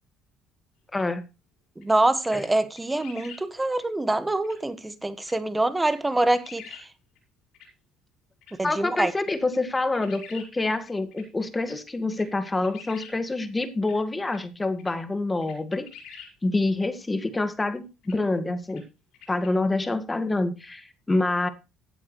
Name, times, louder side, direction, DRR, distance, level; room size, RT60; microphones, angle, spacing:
sound 1, 0.9-1.1 1.8-2.0 2.4-2.5 2.8-3.4 3.8-3.9 4.4-4.6 5.2-5.3 5.8-6.9 7.2-7.3 7.5-7.7 8.4-8.5 9.2-10.5 10.9-11.3 11.6-11.7 12.1-13.1 13.8-14.0 14.3-14.4 14.8-14.9 15.4-16.3 16.8-16.9 18.0-18.2 18.7-18.8 19.1-19.5, left 7 dB, 70° left, 6.0 m, -46 dB
voice 1, 0.9-1.2 2.3-2.5 8.6-15.9 16.4-18.8 19.3-21.5, left 2 dB, 20° left, 1.8 m, -27 dB
voice 2, 1.8-6.6 8.6-9.1, right 2 dB, 15° right, 1.5 m, -25 dB
16.0 x 8.7 x 3.2 m
supercardioid pair, 75°, 0 cm